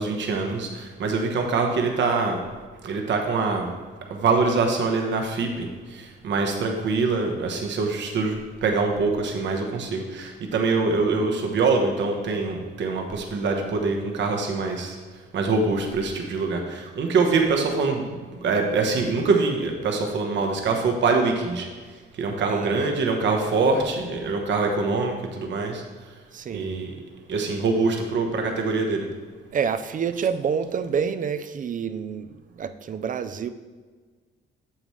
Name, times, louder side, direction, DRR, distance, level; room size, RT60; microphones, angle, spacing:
voice 1, 0.0-2.4 2.8-3.7 4.1-8.3 8.6-15.0 15.3-18.0 18.4-21.7 22.2-25.8 26.5-26.9 27.3-29.0, right 4 dB, 65° right, 2 dB, 1.2 m, -24 dB
voice 2, 22.4-22.8 26.3-26.9 29.5-33.5, right 7 dB, 40° right, 11 dB, 0.5 m, -28 dB
8.7 x 7.1 x 3.2 m, 1.4 s
cardioid pair, 90°, 20 cm